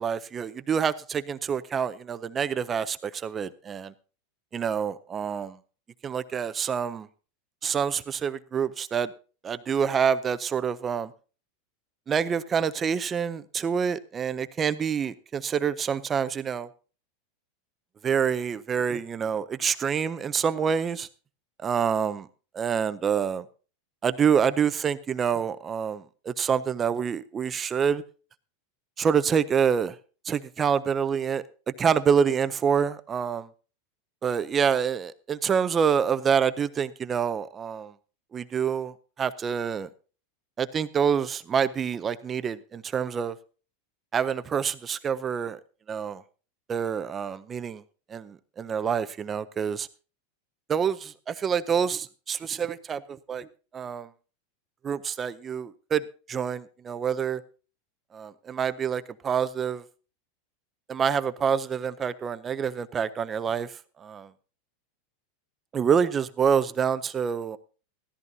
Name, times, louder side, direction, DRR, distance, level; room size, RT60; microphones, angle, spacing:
voice 1, 0.0-3.9 4.5-5.5 6.0-7.1 7.6-9.1 9.4-11.1 12.1-16.7 18.0-21.1 21.6-22.3 22.5-23.4 24.0-28.0 29.0-29.9 30.3-31.4 31.8-33.5 34.2-37.9 38.3-39.9 40.6-43.4 44.1-45.6 45.9-46.2 46.7-47.8 48.1-49.9 50.7-53.5 53.7-54.1 54.8-56.0 56.3-57.4 58.1-59.8 60.9-63.7 64.0-64.3 65.7-67.6, right 7 dB, 20° right, 0.5 m, -27 dB
16.0 x 13.5 x 2.7 m
supercardioid pair, 155°, 0 cm